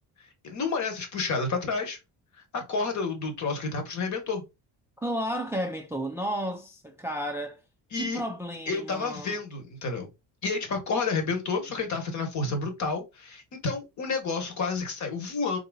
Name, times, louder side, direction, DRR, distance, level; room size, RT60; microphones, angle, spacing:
voice 1, 0.4-2.0 2.3-4.5 7.9-8.2 8.7-10.1 10.4-15.6, left 4 dB, 50° left, 1.2 m, -30 dB
voice 2, 5.0-7.6 7.9-9.4, equal, 5° right, 0.4 m, -32 dB
3.9 x 2.7 x 2.3 m
cardioid pair, 105°, 37 cm